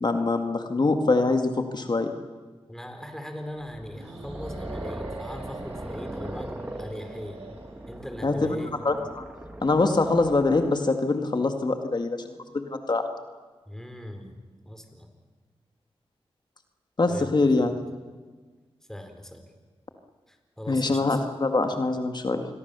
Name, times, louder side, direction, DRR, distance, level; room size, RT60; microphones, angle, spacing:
voice 1, 0.0-2.1 8.2-8.6 8.8-9.3 9.6-12.2 12.5-13.0 17.0-17.8 20.7-22.5, left 3 dB, 45° left, 6 dB, 2.0 m, -24 dB
voice 2, 2.7-7.4 7.9-8.8 13.7-14.3 14.6-15.1 17.1-17.7 18.9-19.4 20.3-21.2, equal, 5° left, 5 dB, 4.4 m, -39 dB
sound 1, 3.6-10.8, right 1 dB, 15° right, 1.9 m, -40 dB
sound 2, 3.9-8.1, right 3 dB, 80° right, 3.7 m, -44 dB
28.5 x 22.0 x 7.0 m, 1.4 s
cardioid pair, 60°, 10 cm